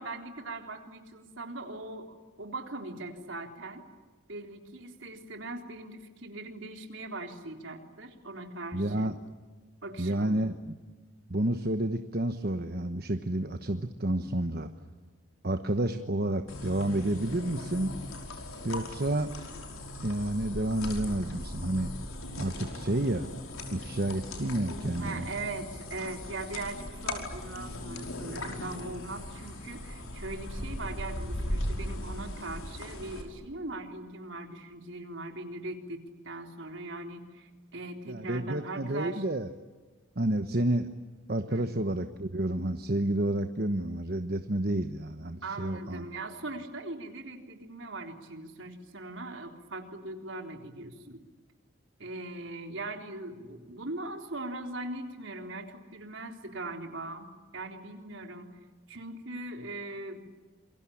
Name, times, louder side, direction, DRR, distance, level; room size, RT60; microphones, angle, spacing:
voice 1, 0.0-3.8 4.3-9.1 9.8-10.4 25.0-39.2 41.5-41.7 45.4-51.2 52.0-57.3 57.5-58.6 58.9-60.2, right 2 dB, 60° right, 4 dB, 3.7 m, -40 dB
voice 2, 8.7-9.2 10.0-10.5 11.3-14.7 15.4-17.9 18.6-19.3 20.0-21.9 22.4-23.3 23.7-25.3 38.1-39.5 40.2-40.9 41.3-46.1, right 1 dB, 45° right, 7 dB, 1.2 m, -30 dB
sound 1, 16.5-33.2, left 1 dB, 80° left, 5.4 m, -38 dB
28.0 x 23.0 x 8.7 m, 1.3 s
head